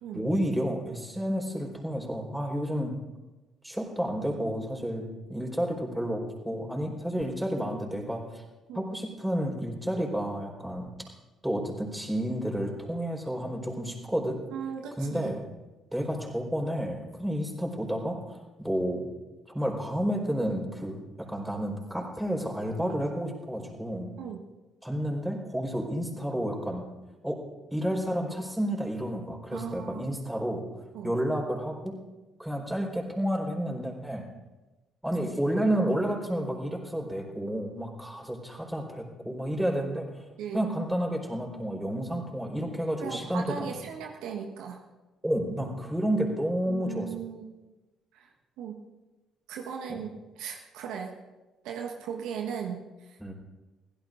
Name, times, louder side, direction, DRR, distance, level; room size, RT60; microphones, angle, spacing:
voice 1, 0.1-3.0 3.6-8.4 8.7-10.9 11.4-14.4 15.0-15.4 15.9-19.1 19.5-24.1 24.8-26.8 27.2-27.4 27.7-30.6 31.0-32.0 32.4-34.3 35.0-40.1 40.5-43.7 45.2-47.1 49.9-50.0 53.2-53.3, equal, 5° right, 0 dB, 4.4 m, -31 dB
voice 2, 14.5-15.3 24.2-24.4 29.5-30.1 30.9-31.2 40.4-40.7 43.0-44.8 46.7-47.6 48.1-48.3 48.6-48.8 49.5-51.1 51.6-53.2, right 7 dB, 70° right, 2 dB, 1.3 m, -37 dB
24.0 x 16.0 x 2.6 m, 1.1 s
hypercardioid pair, 50°, 0 cm